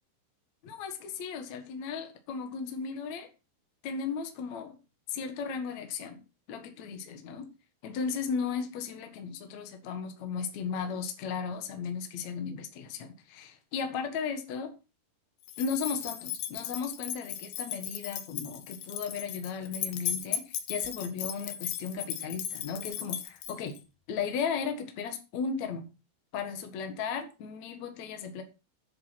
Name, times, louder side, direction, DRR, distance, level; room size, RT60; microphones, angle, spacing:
voice 1, 0.6-3.3 3.8-4.8 5.1-6.2 6.5-7.5 7.8-14.7 15.6-23.8 24.1-25.9 26.3-28.4, left 6 dB, 55° left, 6 dB, 2.4 m, -35 dB
sound 1, 15.5-23.8, left 10 dB, 90° left, 3.2 m, -36 dB
10.5 x 7.8 x 5.9 m, 0.30 s
omnidirectional pair, 4.5 m